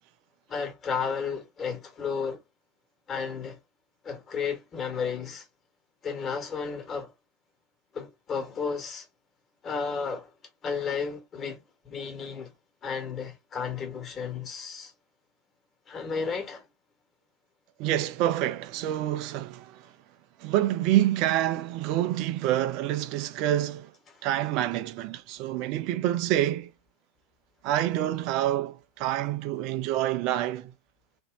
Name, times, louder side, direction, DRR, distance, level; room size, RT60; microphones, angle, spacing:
voice 1, 0.5-2.4 3.1-3.6 4.0-5.5 6.0-7.1 7.9-9.1 9.6-10.3 10.6-12.5 12.8-14.9 15.9-16.6 24.1-24.3, left 6 dB, 25° left, 1.4 m, -33 dB
voice 2, 17.8-19.9 20.4-23.9 24.2-26.7 27.6-30.7, right 13 dB, 40° right, 0.5 m, -27 dB
3.0 x 2.6 x 3.5 m
figure-of-eight pair, 90°, 0 cm